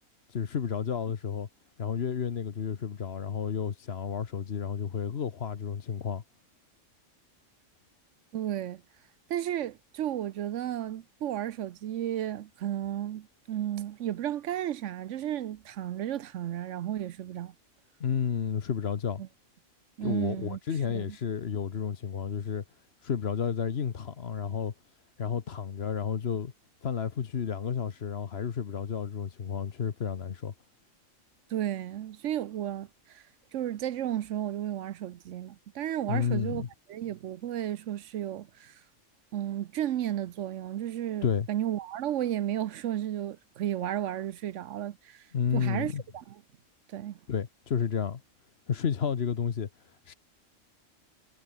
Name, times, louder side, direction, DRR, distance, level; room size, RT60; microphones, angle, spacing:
voice 1, 0.3-1.5 1.8-6.2 18.0-19.2 20.0-22.6 23.0-24.7 25.2-26.5 26.8-30.5 36.1-36.7 41.2-41.5 45.3-46.0 47.3-48.2 48.7-50.1, left 7 dB, 55° left, 1.3 m, -31 dB
voice 2, 8.3-8.8 9.3-17.5 19.2-19.3 20.0-20.6 20.9-21.2 31.5-33.2 33.5-38.8 39.3-45.2 45.5-46.4 46.9-47.2, right 11 dB, 70° right, 1.0 m, -33 dB
omnidirectional pair, 1.3 m